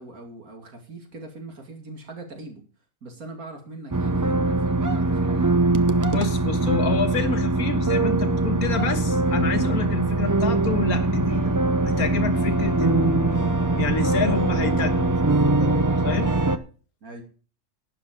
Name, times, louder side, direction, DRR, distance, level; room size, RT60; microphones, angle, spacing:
voice 1, 0.0-2.6 3.0-5.7 17.0-17.2, right 2 dB, 80° right, 3 dB, 3.0 m, -41 dB
sound 1, 3.9-16.6, right 2 dB, 25° right, 0.4 m, -22 dB
voice 2, 6.1-11.5 11.8-13.4 13.7-16.4, left 5 dB, 85° left, 7 dB, 1.9 m, -28 dB
12.0 x 10.0 x 5.1 m, 0.38 s
omnidirectional pair, 1.5 m